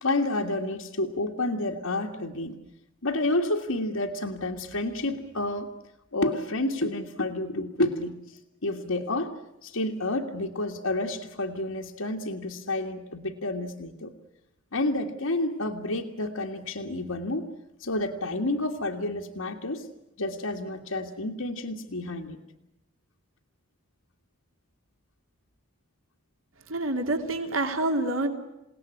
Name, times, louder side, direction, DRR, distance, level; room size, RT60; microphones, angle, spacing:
voice 1, 0.0-2.6 3.0-5.7 6.1-14.1 14.7-17.5 17.8-19.9 20.2-22.4, left 2 dB, 85° left, -1 dB, 1.9 m, -30 dB
voice 2, 26.7-28.3, right 2 dB, 70° right, 5 dB, 2.9 m, -27 dB
29.0 x 18.5 x 9.8 m, 0.92 s
head